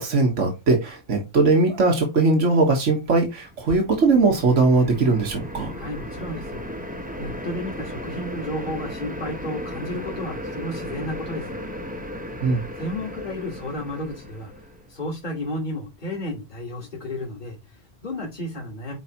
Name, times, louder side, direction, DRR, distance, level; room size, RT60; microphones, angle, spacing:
voice 1, 0.0-5.7 12.4-12.6, right 3 dB, 85° right, 1.8 m, -20 dB
sound 1, 3.5-14.9, equal, 10° right, 0.8 m, -35 dB
voice 2, 5.7-6.6 7.2-11.6 12.8-19.0, left 1 dB, 40° left, 1.8 m, -32 dB
8.2 x 4.7 x 3.0 m
omnidirectional pair, 1.2 m